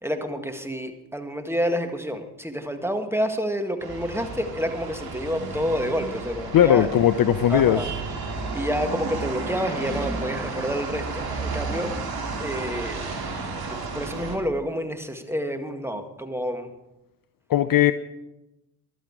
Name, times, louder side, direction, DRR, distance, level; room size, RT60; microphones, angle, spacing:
voice 1, 0.0-6.9 7.5-7.9 8.3-11.9 12.4-13.0 13.6-16.7, equal, 5° right, 7 dB, 1.8 m, -29 dB
sound 1, 3.8-14.4, right 3 dB, 50° right, 2.9 m, -32 dB
voice 2, 6.5-7.8 17.5-17.9, left 11 dB, 45° left, 13 dB, 0.7 m, -18 dB
14.5 x 12.0 x 4.9 m, 0.97 s
hypercardioid pair, 45°, 46 cm